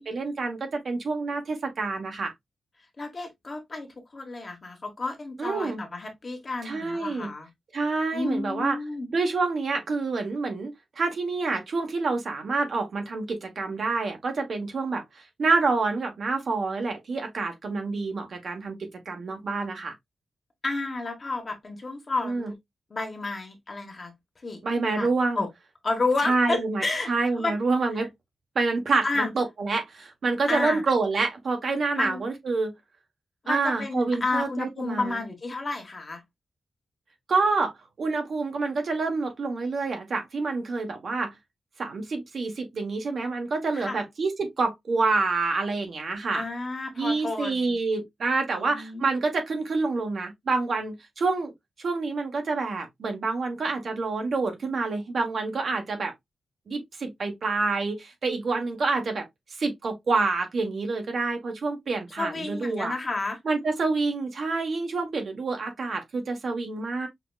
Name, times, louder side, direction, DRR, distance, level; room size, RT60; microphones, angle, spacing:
voice 1, 0.0-2.3 5.4-5.8 6.6-7.3 7.7-8.7 9.1-15.0 15.4-19.9 22.2-22.5 24.6-25.4 26.2-28.1 28.5-32.7 33.5-35.2 37.3-37.7 38.0-41.3 41.8-46.4 47.0-51.5 51.8-56.1 56.7-59.3 59.6-62.9 63.4-67.1, right 3 dB, 50° right, 1.2 m, -27 dB
voice 2, 3.0-3.9 4.1-7.5 8.1-9.1 20.6-22.5 22.9-24.1 24.4-24.6 24.9-25.1 25.4-25.5 25.8-27.1 27.4-27.6 28.0-28.1 29.0-29.3 30.5-30.8 32.0-32.2 33.4-36.2 43.7-44.0 46.3-47.8 48.5-49.1 62.2-63.4, left 3 dB, 30° left, 1.3 m, -31 dB
5.8 x 2.9 x 2.4 m
wide cardioid pair, 155°, 0 cm